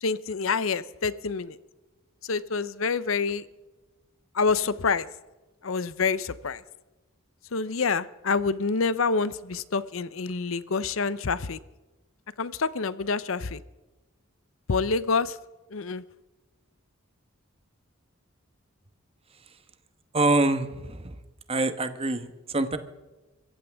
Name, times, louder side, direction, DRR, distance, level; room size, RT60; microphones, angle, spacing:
voice 1, 0.0-1.6 2.2-3.4 4.3-5.1 5.6-6.6 7.5-11.6 12.4-13.6 14.7-15.4 15.7-16.0, left 4 dB, 75° left, 17 dB, 0.7 m, -27 dB
voice 2, 20.1-21.1 21.5-22.8, right 2 dB, 30° right, 10 dB, 1.2 m, -25 dB
25.5 x 15.0 x 3.5 m, 1.1 s
head